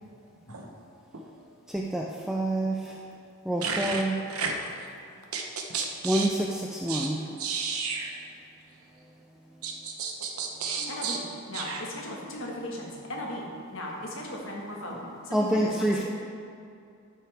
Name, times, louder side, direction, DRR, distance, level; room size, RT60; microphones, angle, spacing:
voice 1, 1.7-3.0 3.4-4.2 6.0-7.4 15.3-16.0, right 1 dB, 5° right, -2 dB, 0.4 m, -27 dB
voice 2, 3.6-4.0 4.4-4.5 5.3-5.4 5.7-6.3 6.9-7.1 7.4-8.1 9.6-11.2 11.5-11.8, right 5 dB, 75° right, 2 dB, 1.0 m, -32 dB
voice 3, 10.7-15.0 15.2-16.0, left 1 dB, 60° left, -2 dB, 1.6 m, -37 dB
13.0 x 5.9 x 3.5 m, 2.4 s
head